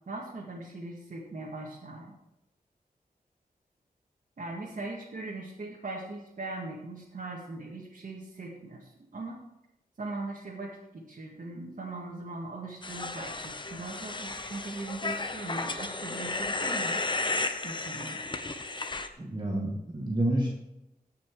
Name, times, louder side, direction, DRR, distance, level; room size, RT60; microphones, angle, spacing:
voice 1, 0.1-2.1 4.4-9.4 10.0-10.7 10.9-17.0 17.6-18.2, right 2 dB, 60° right, -5 dB, 2.0 m, -40 dB
sound 1, 12.8-19.1, left 3 dB, 30° left, 0.8 m, -33 dB
voice 2, 19.2-20.5, right 1 dB, 30° right, -3 dB, 2.1 m, -29 dB
17.0 x 6.1 x 4.8 m, 0.91 s
wide cardioid pair, 110°, 16 cm